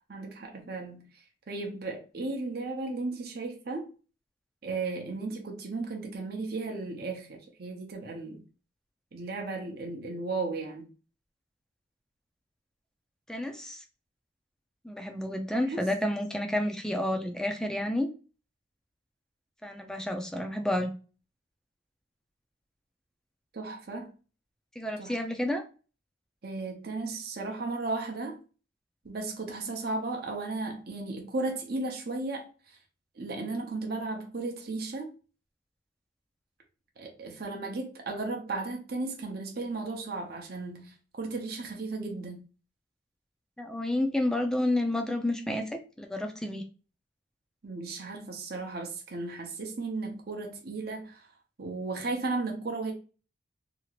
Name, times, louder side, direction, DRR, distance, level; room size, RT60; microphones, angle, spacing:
voice 1, 0.1-1.1 1.5-3.9 4.6-8.4 9.1-10.9 15.7-15.8 23.5-24.1 25.0-25.1 26.4-28.4 29.0-32.8 33.2-35.1 37.0-42.4 47.6-51.3 51.6-52.9, right 3 dB, 55° right, 0.7 m, -35 dB
voice 2, 13.3-13.8 14.8-18.1 19.6-20.9 24.8-25.6 43.6-46.6, left 1 dB, 5° left, 0.4 m, -30 dB
2.8 x 2.4 x 2.9 m
head